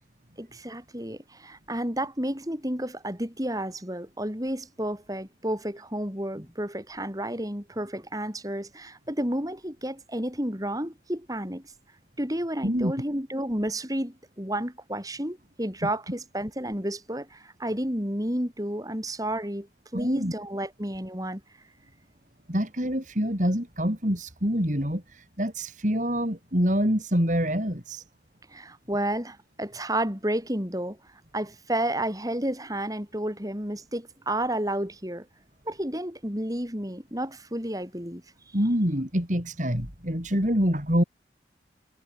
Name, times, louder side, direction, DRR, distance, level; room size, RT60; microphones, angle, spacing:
voice 1, 0.4-11.6 12.2-19.7 19.9-21.4 28.5-31.0 31.3-35.3 35.7-38.2, right 1 dB, 20° right, 7.4 m, -31 dB
voice 2, 19.9-20.3 22.5-28.0 38.5-41.0, equal, 45° right, 8.0 m, -26 dB
head